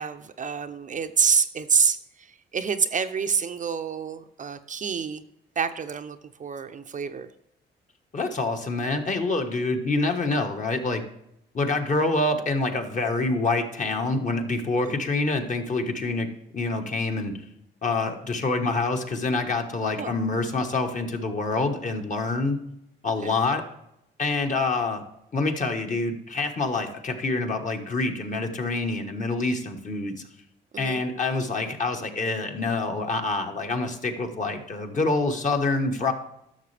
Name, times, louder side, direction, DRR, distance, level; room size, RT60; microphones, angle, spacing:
voice 1, 0.0-2.0 2.5-5.2 5.6-7.3 14.8-14.9 20.0-20.1 23.2-23.3 30.7-31.0, right 6 dB, 40° right, 8 dB, 0.6 m, -27 dB
voice 2, 8.1-11.0 11.5-16.3 16.5-17.3 17.8-22.6 23.0-23.6 24.2-25.0 25.3-30.2 30.8-36.1, left 3 dB, 40° left, 4 dB, 1.3 m, -26 dB
11.5 x 6.6 x 3.3 m, 0.81 s
cardioid pair, 90°, 20 cm